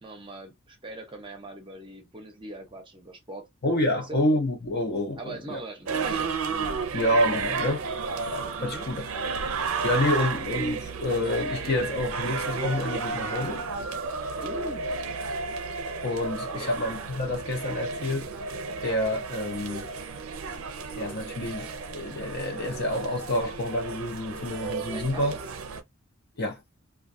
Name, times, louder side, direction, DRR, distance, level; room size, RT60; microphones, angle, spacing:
voice 1, 0.0-3.5 3.9-4.2 5.2-6.4 7.1-7.7 8.6-8.9 14.4-15.0 16.5-16.7 24.9-25.4, right 2 dB, 25° right, 0.6 m, -41 dB
voice 2, 3.6-5.6 6.9-7.8 8.2-9.0 9.5-13.6 16.0-18.3 18.8-19.9 21.0-25.4 26.4-26.6, left 1 dB, 50° left, 0.8 m, -28 dB
sound 1, 5.9-25.8, right 4 dB, 80° right, 0.4 m, -33 dB
2.3 x 2.2 x 2.5 m
head